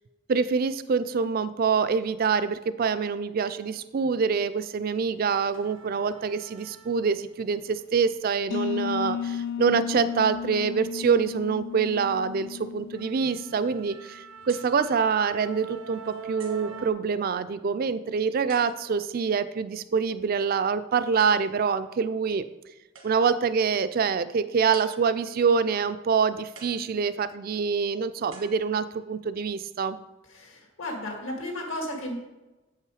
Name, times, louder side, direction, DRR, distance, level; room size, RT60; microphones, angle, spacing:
voice 1, 0.3-22.4 23.0-30.0, right 5 dB, 45° right, 14 dB, 0.3 m, -25 dB
sound 1, 4.4-4.6 4.9-7.3 7.7-11.4 11.8-12.1 12.5-12.6 12.9-16.9, right 4 dB, 70° right, 0.7 m, -46 dB
sound 2, 8.5-14.1, left 8 dB, 55° left, 0.3 m, -34 dB
sound 3, 14.5-14.8 15.5-15.6 16.4-16.8 18.5-19.1 21.2-21.6 22.9-23.5 24.7-25.4 26.5-27.4 28.3-29.1, right 5 dB, 90° right, 1.4 m, -50 dB
voice 2, 30.3-32.2, left 1 dB, 80° left, 1 dB, 1.9 m, -34 dB
7.5 x 5.7 x 4.8 m, 1.1 s
head